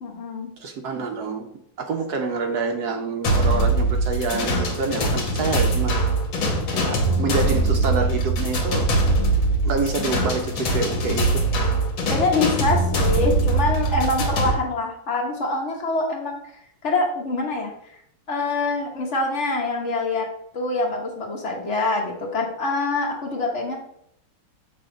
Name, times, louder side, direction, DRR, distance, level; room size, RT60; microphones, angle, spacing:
voice 1, 0.0-0.5 12.1-16.4 16.8-17.7 18.3-20.3 20.5-23.8, left 2 dB, 45° left, 0 dB, 1.0 m, -25 dB
voice 2, 0.6-1.5 1.8-6.0 6.7-8.9 9.6-11.4, right 4 dB, 75° right, 4 dB, 0.9 m, -27 dB
sound 1, 3.2-14.5, right 2 dB, 65° left, 1.7 m, -22 dB
6.8 x 3.5 x 4.9 m, 0.73 s
omnidirectional pair, 2.4 m